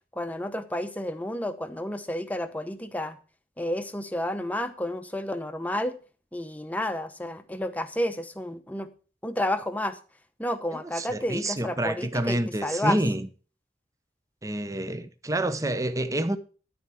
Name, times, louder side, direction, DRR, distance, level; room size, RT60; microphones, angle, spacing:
voice 1, 0.1-3.2 3.6-6.0 6.3-8.9 9.2-10.0 10.4-13.0, left 1 dB, 10° left, 0.9 m, -31 dB
voice 2, 10.7-13.3 14.4-16.4, right 1 dB, 20° right, 0.8 m, -28 dB
13.0 x 4.4 x 7.6 m
head